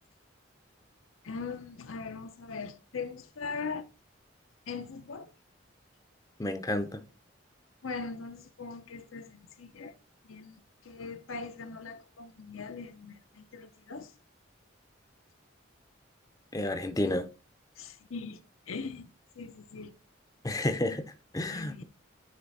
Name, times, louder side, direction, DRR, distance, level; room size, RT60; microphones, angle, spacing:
voice 1, 1.2-3.9 4.7-5.3 7.8-9.9 10.2-14.1 17.8-18.4 18.7-19.1 19.4-19.9 21.5-21.8, left 4 dB, 85° left, 0.7 m, -40 dB
voice 2, 6.4-7.0 16.5-17.3 20.4-21.0 21.3-21.8, left 1 dB, 15° left, 0.5 m, -30 dB
9.7 x 3.3 x 4.1 m
head